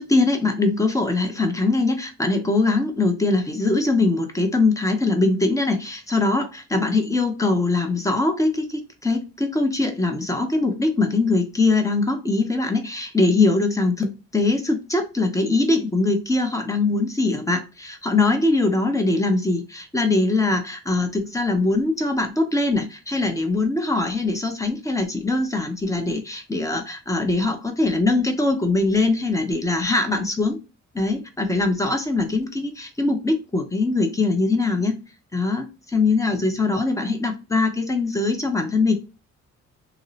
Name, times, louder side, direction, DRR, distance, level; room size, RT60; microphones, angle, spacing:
voice 1, 0.0-30.6 30.9-35.0 35.3-38.9, left 3 dB, 10° left, 5 dB, 0.6 m, -22 dB
2.7 x 2.0 x 2.4 m, 0.29 s
cardioid pair, 90°, 30 cm